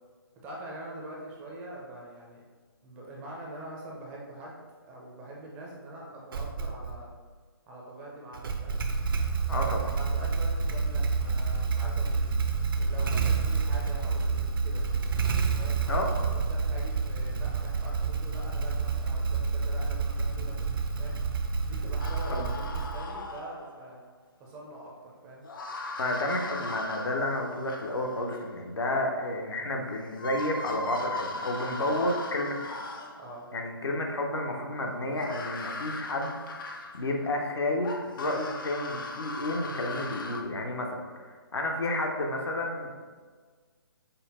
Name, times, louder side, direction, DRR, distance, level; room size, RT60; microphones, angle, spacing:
voice 1, 0.4-2.4 2.8-7.1 7.7-8.8 9.8-12.3 12.8-14.9 15.6-21.2 21.7-24.0 24.4-25.5 31.8-32.1 33.2-33.5, right 1 dB, 10° right, -3 dB, 0.4 m, -44 dB
Motorcycle / Engine starting, 6.3-7.0 8.3-23.2, right 4 dB, 60° right, 0.5 m, -29 dB
voice 2, 9.5-10.0 15.9-16.1 22.3-22.5 26.0-32.8 33.5-36.4 36.9-43.0, left 1 dB, 85° left, 1 dB, 0.9 m, -31 dB
sound 1, 22.0-23.9 25.4-28.4 29.7-29.8 30.1-33.4 35.1-37.2 37.8-40.4, left 2 dB, 55° left, 0.5 m, -38 dB
5.5 x 2.1 x 4.2 m, 1.5 s
hypercardioid pair, 160°, 13 cm